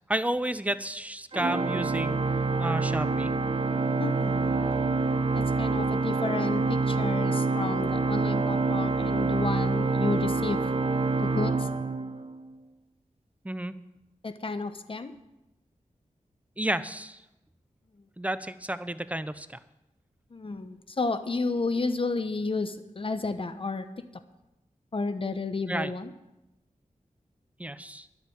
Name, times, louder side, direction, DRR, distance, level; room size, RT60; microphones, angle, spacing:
voice 1, 0.1-2.2 2.6-3.3 13.4-13.7 16.6-17.2 18.2-19.6 25.7-25.9 27.6-28.1, right 1 dB, 10° right, 12 dB, 0.7 m, -31 dB
Organ, 1.3-12.5, right 3 dB, 45° right, 0.9 m, -26 dB
voice 2, 4.0-4.5 5.3-10.7 11.2-11.7 14.2-15.1 20.3-23.9 24.9-26.1, left 3 dB, 40° left, 10 dB, 1.0 m, -31 dB
11.5 x 8.2 x 8.6 m, 0.94 s
wide cardioid pair, 85°, 14 cm